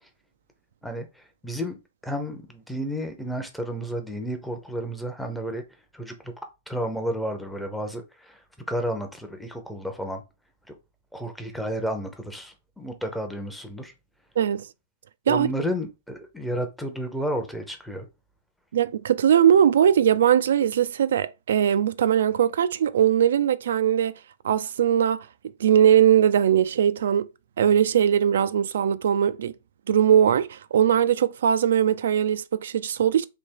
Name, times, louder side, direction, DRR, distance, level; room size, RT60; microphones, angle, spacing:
voice 1, 0.8-5.6 5.9-6.3 6.7-8.4 8.7-10.2 11.1-13.9 15.3-18.1, equal, ahead, 0.6 m, -32 dB
voice 2, 14.4-14.7 15.3-15.5 18.7-24.1 24.4-25.3 25.6-27.3 27.6-29.5 29.9-33.2, right 9 dB, 80° right, 0.3 m, -20 dB
3.4 x 2.8 x 4.4 m
hypercardioid pair, 160°, 0 cm